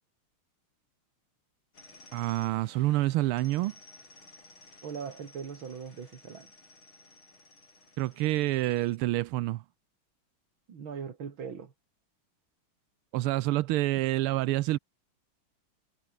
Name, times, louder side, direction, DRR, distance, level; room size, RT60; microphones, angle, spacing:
sound 1, 1.7-9.0, left 3 dB, 65° left, 7.7 m, -56 dB
voice 1, 2.1-3.7 8.0-9.6 13.1-14.8, right 17 dB, 90° right, 1.6 m, -27 dB
voice 2, 4.8-6.5 10.7-11.7, right 6 dB, 65° right, 3.0 m, -40 dB
omnidirectional pair, 2.4 m